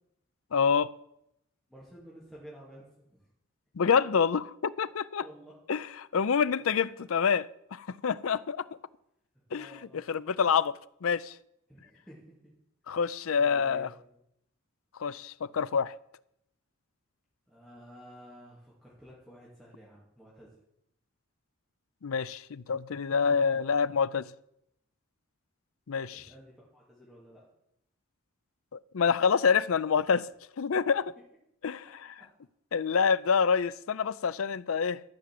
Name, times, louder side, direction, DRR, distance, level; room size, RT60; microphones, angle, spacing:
voice 1, 0.5-0.9 3.8-5.2 5.7-7.5 7.7-8.6 9.5-10.7 11.0-11.3 12.9-13.9 15.0-16.0 22.0-24.3 25.9-26.3 28.7-30.3 30.6-31.1 31.6-31.9 32.7-35.0, left 6 dB, 70° left, 0.5 m, -27 dB
voice 2, 1.7-3.3 5.2-5.6 9.5-10.1 11.7-12.5 13.3-14.1 17.5-20.6 26.1-27.5 32.2-32.3, equal, ahead, 2.7 m, -52 dB
13.5 x 6.2 x 7.7 m
head